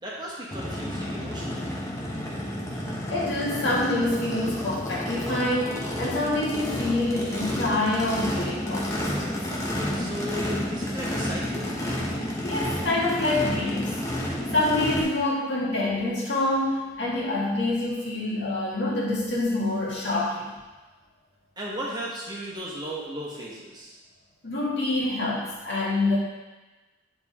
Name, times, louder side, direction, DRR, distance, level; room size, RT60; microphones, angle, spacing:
voice 1, 0.0-1.9 9.9-11.7 21.6-23.9, equal, 20° right, -5 dB, 1.2 m, -36 dB
Race car auto racing / Idling / Accelerating revving vroom, 0.5-15.0, left 1 dB, 15° left, 0.9 m, -30 dB
voice 2, 3.1-9.2 12.4-14.3 14.5-20.5 24.4-26.2, left 2 dB, 65° left, -6 dB, 2.0 m, -26 dB
9.0 x 4.2 x 3.6 m, 1.2 s
head